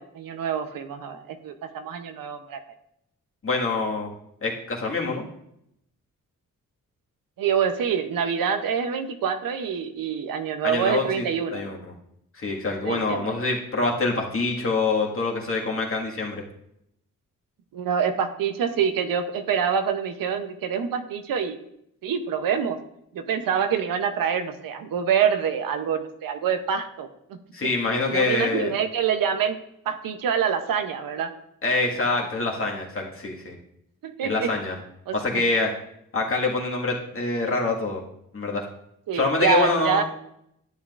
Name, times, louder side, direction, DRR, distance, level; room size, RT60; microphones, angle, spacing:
voice 1, 0.0-2.6 7.4-11.6 12.8-13.3 17.7-21.6 22.0-22.8 23.1-27.4 28.1-29.6 29.9-31.3 34.0-34.5 35.1-35.4 39.1-40.0, right 7 dB, 90° right, 8 dB, 0.7 m, -26 dB
voice 2, 3.4-4.1 4.4-5.2 10.6-11.2 11.5-11.9 12.3-16.4 27.5-28.7 31.6-33.6 34.2-34.8 35.1-35.7 36.1-38.0 38.3-38.7 39.1-40.0, left 3 dB, 40° left, -1 dB, 1.7 m, -25 dB
11.5 x 7.4 x 2.5 m, 0.77 s
cardioid pair, 75°, 33 cm